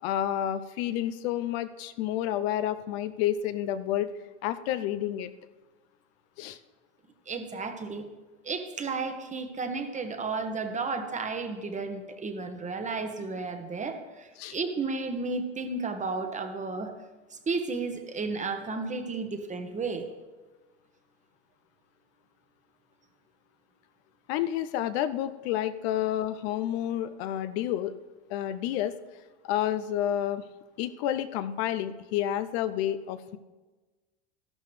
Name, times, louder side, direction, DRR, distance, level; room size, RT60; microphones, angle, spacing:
voice 1, 0.0-4.1 4.4-5.3 6.4-6.6 14.4-14.5 24.3-27.9 28.3-28.9 29.4-30.5 30.8-33.4, left 11 dB, 70° left, 12 dB, 0.6 m, -30 dB
voice 2, 7.3-8.1 8.4-16.9 17.3-20.1, right 4 dB, 20° right, 7 dB, 1.2 m, -33 dB
12.5 x 11.5 x 3.3 m, 1.2 s
supercardioid pair, 105°, 34 cm